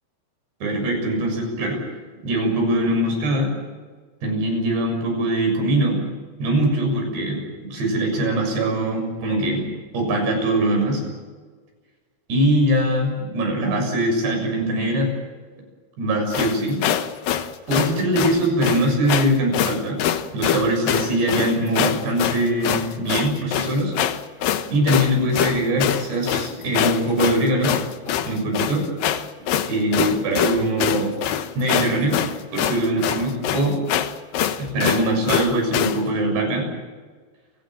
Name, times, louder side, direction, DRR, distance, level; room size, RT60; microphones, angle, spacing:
voice 1, 0.6-1.8 2.2-3.5 4.2-6.0 6.4-9.7 9.9-11.0 12.3-15.1 16.0-16.8 17.7-20.0 20.3-23.9 24.7-27.8 28.2-28.9 29.7-31.1 31.6-32.2 32.5-33.8 34.6-36.7, right 1 dB, 60° right, 2 dB, 8.9 m, -22 dB
sound 1, 16.3-36.0, left 10 dB, 70° left, 2.2 m, -24 dB
29.5 x 17.5 x 7.5 m, 1.4 s
omnidirectional pair, 5.5 m